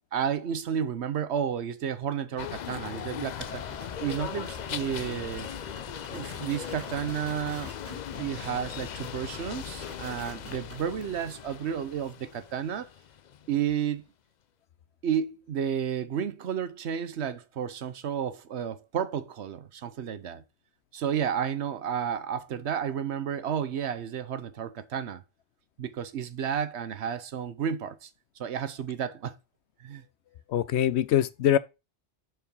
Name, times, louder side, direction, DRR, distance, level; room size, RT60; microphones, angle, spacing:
voice 1, 0.0-3.6 4.0-5.5 6.1-7.7 8.2-12.9 13.5-14.1 15.0-20.4 20.9-25.2 25.8-28.1 28.4-29.3 29.8-30.0, right 8 dB, 70° right, 1.1 m, -32 dB
sound 1, 2.4-13.6, left 9 dB, 55° left, 0.5 m, -39 dB
sound 2, 3.4-10.9, equal, 10° left, 1.6 m, -46 dB
voice 2, 30.5-31.6, left 11 dB, 75° left, 0.9 m, -23 dB
6.9 x 4.6 x 5.4 m
omnidirectional pair, 1.2 m